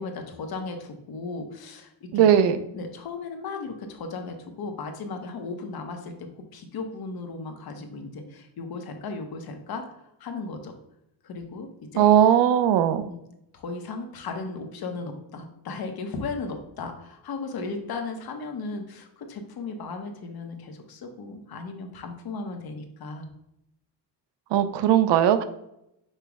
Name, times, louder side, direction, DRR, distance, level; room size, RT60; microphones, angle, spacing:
voice 1, 0.0-2.3 2.7-9.9 10.2-10.7 11.2-12.1 13.0-13.2 13.5-23.3, left 3 dB, 60° left, 5 dB, 0.8 m, -36 dB
voice 2, 2.1-2.6 12.0-13.0 24.5-25.4, right 10 dB, 80° right, 11 dB, 0.5 m, -19 dB
5.4 x 2.0 x 4.6 m, 0.82 s
cardioid pair, 140°, 42 cm